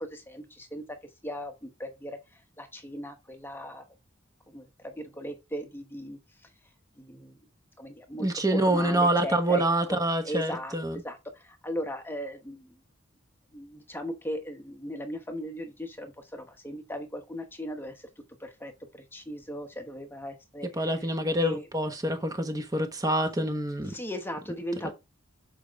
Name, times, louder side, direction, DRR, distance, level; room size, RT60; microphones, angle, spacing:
voice 1, 0.1-0.4 0.7-0.8 1.2-1.5 1.8-2.2 2.6-3.8 4.5-4.6 5.0-6.2 7.1-7.3 7.8-9.6 10.2-10.7 11.0-11.2 11.6-12.6 13.5-16.1 16.6-17.9 18.6-18.7 19.1-20.7 21.4-21.7 23.9-24.9, equal, 10° left, 0.9 m, -37 dB
voice 2, 8.2-11.0 20.8-23.9 24.8-24.9, right 1 dB, 20° right, 1.1 m, -26 dB
7.1 x 5.1 x 3.5 m
head